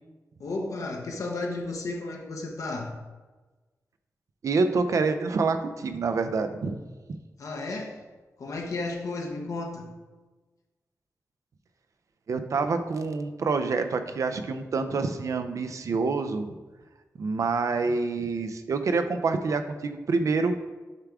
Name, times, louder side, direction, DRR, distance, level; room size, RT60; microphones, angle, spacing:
voice 1, 0.4-3.0 7.4-7.9 8.4-9.9, left 2 dB, 65° left, 1 dB, 0.8 m, -33 dB
voice 2, 4.4-6.8 12.3-16.6 17.1-20.7, right 4 dB, 60° right, 8 dB, 0.5 m, -27 dB
6.6 x 3.5 x 4.8 m, 1.2 s
wide cardioid pair, 135°, 6 cm